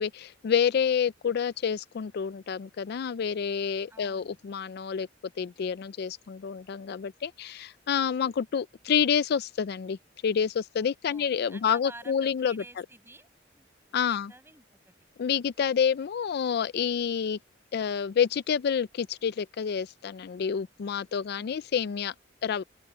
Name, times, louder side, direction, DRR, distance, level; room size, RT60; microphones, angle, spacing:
voice 1, 0.0-5.1 5.4-10.0 10.2-12.6 13.9-14.3 15.2-17.4 17.7-22.1 22.4-22.6, left 7 dB, 55° left, 0.4 m, -28 dB
voice 2, 3.9-4.4 11.1-13.7 14.0-14.9 21.4-22.0, right 2 dB, 15° right, 7.7 m, -51 dB
open air
head